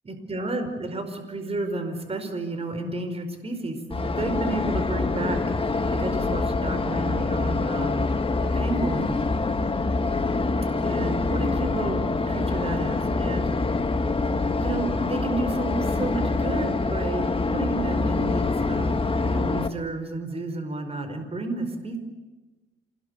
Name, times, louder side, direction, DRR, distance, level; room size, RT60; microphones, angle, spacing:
voice 1, 0.1-5.5 5.7-8.0 8.5-9.2 10.8-13.5 14.5-22.0, right 2 dB, 30° right, 7 dB, 5.1 m, -31 dB
sound 1, 3.9-19.7, left 3 dB, 25° left, 1.9 m, -25 dB
27.5 x 21.0 x 9.8 m, 1.2 s
cardioid pair, 90°, 20 cm